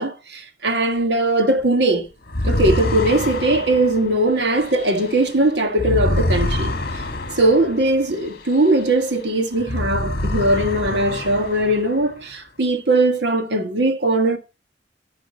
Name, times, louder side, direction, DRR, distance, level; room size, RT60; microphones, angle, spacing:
voice 1, 0.0-2.1 2.4-6.7 7.3-14.4, right 2 dB, 70° right, 1.6 m, -19 dB
sound 1, 2.3-9.2 9.5-12.2, left 1 dB, 60° left, 1.5 m, -26 dB
14.5 x 5.2 x 4.1 m
head